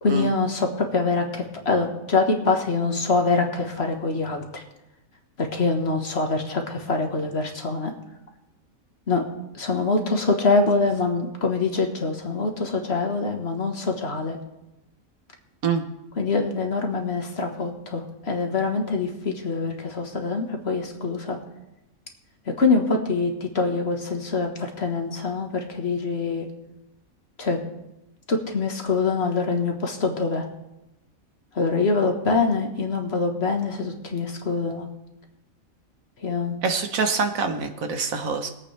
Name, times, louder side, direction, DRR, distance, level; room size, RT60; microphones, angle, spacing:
voice 1, 0.0-4.6 5.4-7.9 9.1-9.2 9.5-14.4 16.2-21.4 22.5-26.5 27.4-27.6 28.3-30.5 31.6-34.9 36.2-36.6, left 3 dB, 50° left, 3 dB, 1.6 m, -24 dB
voice 2, 36.6-38.5, right 5 dB, 75° right, 7 dB, 1.5 m, -25 dB
22.0 x 8.4 x 3.4 m, 0.91 s
omnidirectional pair, 1.4 m